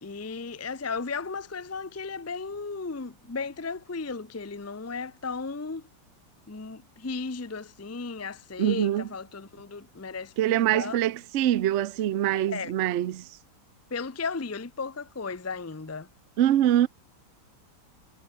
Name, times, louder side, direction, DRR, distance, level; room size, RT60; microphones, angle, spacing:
voice 1, 0.0-5.8 6.5-11.0 12.3-12.7 13.9-16.1, left 4 dB, 20° left, 0.4 m, -35 dB
voice 2, 8.6-9.0 10.4-13.3 16.4-16.9, right 12 dB, 65° right, 0.7 m, -24 dB
omnidirectional pair, 2.1 m